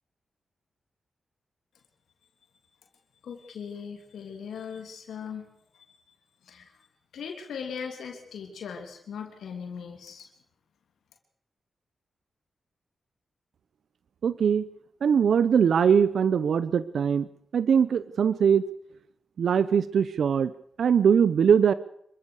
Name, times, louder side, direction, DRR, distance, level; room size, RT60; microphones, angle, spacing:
voice 1, 3.2-5.5 5.7-5.8 6.4-6.8 7.1-10.3, left 6 dB, 90° left, 3 dB, 3.0 m, -39 dB
voice 2, 14.2-14.6 15.0-17.3 17.5-18.6 19.4-20.5 20.8-21.7, right 7 dB, 75° right, 16 dB, 0.7 m, -21 dB
26.0 x 15.0 x 6.6 m, 0.71 s
cardioid pair, 60°, 0 cm